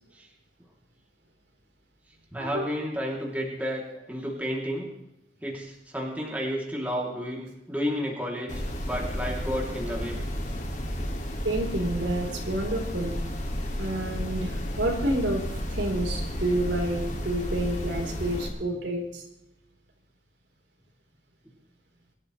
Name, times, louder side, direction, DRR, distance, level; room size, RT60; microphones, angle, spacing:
voice 1, 2.3-4.9 5.4-8.5 8.8-10.2, equal, 10° right, -2 dB, 3.0 m, -31 dB
sound 1, 8.5-18.5, equal, 45° left, 2.4 m, -32 dB
voice 2, 11.4-13.1 13.8-19.2, right 1 dB, 90° right, 0 dB, 4.1 m, -29 dB
23.5 x 13.0 x 3.3 m, 0.90 s
head